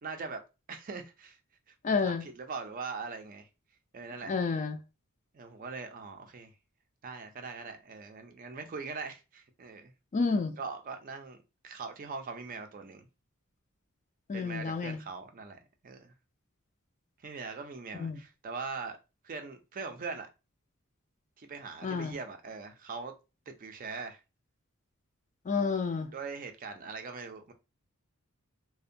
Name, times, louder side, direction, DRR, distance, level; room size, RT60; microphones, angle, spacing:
voice 1, 0.0-0.4 0.7-1.4 1.9-3.5 3.9-4.3 5.3-6.5 7.0-9.9 10.6-11.4 11.6-13.1 14.3-16.1 17.2-19.0 19.2-20.3 21.4-23.1 23.5-24.2 26.1-27.5, right 4 dB, 40° right, 0.4 m, -41 dB
voice 2, 1.8-2.2 4.3-4.8 10.1-10.5 14.3-15.0 18.0-18.2 21.8-22.1 25.5-26.1, left 4 dB, 35° left, 0.3 m, -30 dB
2.6 x 2.1 x 2.5 m
head